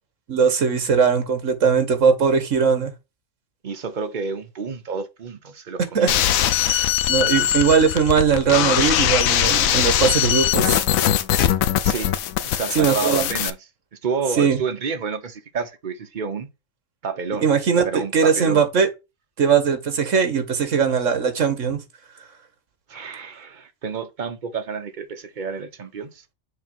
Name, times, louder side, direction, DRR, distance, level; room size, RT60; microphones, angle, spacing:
voice 1, 0.3-2.9 5.9-6.1 6.6-10.8 12.7-13.3 14.4-14.6 17.4-18.9 19.4-21.8, right 6 dB, 70° right, 1.7 m, -20 dB
voice 2, 3.6-6.2 11.8-12.1 12.4-13.6 13.9-16.5 17.0-17.5 17.8-18.6 22.9-26.2, right 5 dB, 40° right, 0.8 m, -29 dB
sound 1, 6.1-13.5, left 11 dB, 85° left, 1.0 m, -21 dB
6.6 x 3.0 x 5.3 m
omnidirectional pair, 1.4 m